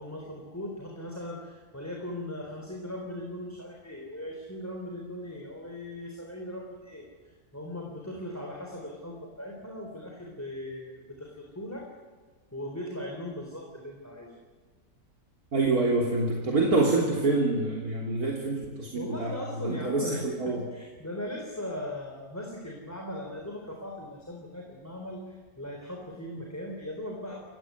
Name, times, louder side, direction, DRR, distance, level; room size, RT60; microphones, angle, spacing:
voice 1, 0.0-11.9 12.5-14.3 18.9-27.6, left 1 dB, 10° left, 0 dB, 3.7 m, -39 dB
voice 2, 15.5-20.6, right 3 dB, 70° right, -2 dB, 3.8 m, -26 dB
28.5 x 16.0 x 9.4 m, 1.4 s
omnidirectional pair, 1.6 m